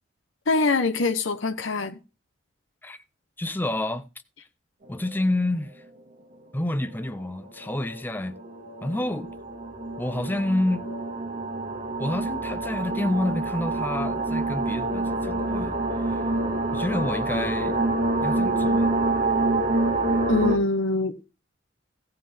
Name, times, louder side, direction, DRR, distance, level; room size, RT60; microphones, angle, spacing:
voice 1, 0.5-2.0 20.3-21.3, left 3 dB, 90° left, 1.0 m, -24 dB
voice 2, 3.4-4.0 4.9-5.8 6.5-8.4 8.8-9.3 10.0-10.8 12.0-15.7 16.0-16.2 16.7-17.9 18.2-18.9, left 1 dB, 10° left, 0.5 m, -28 dB
sound 1, 5.1-5.2 6.8-20.6, right 2 dB, 45° right, 1.8 m, -27 dB
16.5 x 7.6 x 3.4 m
head